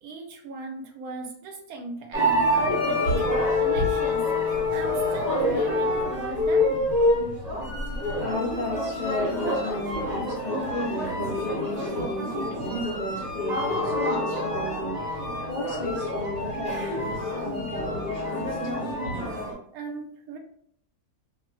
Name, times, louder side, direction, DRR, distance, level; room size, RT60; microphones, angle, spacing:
voice 1, 0.0-3.3 3.6-6.8 19.7-20.4, right 3 dB, 75° right, 3 dB, 1.1 m, -37 dB
sound 1, 2.1-19.5, left 1 dB, 30° right, 1.0 m, -27 dB
voice 2, 8.2-18.7, left 2 dB, 90° left, -5 dB, 0.4 m, -33 dB
2.8 x 2.0 x 3.0 m, 0.66 s
omnidirectional pair, 1.7 m